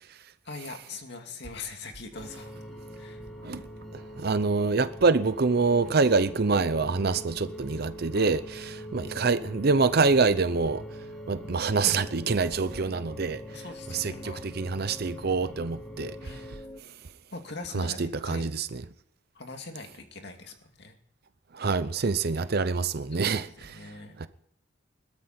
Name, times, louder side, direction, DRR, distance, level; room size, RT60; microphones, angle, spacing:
voice 1, 0.4-2.5 3.0-3.2 7.1-7.4 8.1-8.6 13.5-14.4 16.2-16.5 17.3-18.4 19.3-21.0 22.3-22.5 23.2-23.3 23.6-24.3, left 3 dB, 60° left, 2.4 m, -42 dB
sound 1, 2.1-16.8, equal, 30° left, 0.8 m, -44 dB
sound 2, 2.1-16.6, right 1 dB, ahead, 3.4 m, -48 dB
voice 2, 3.9-10.8 11.3-13.4 13.9-16.2 17.7-18.8 21.5-24.3, right 4 dB, 55° right, 0.7 m, -26 dB
21.5 x 13.5 x 4.4 m
head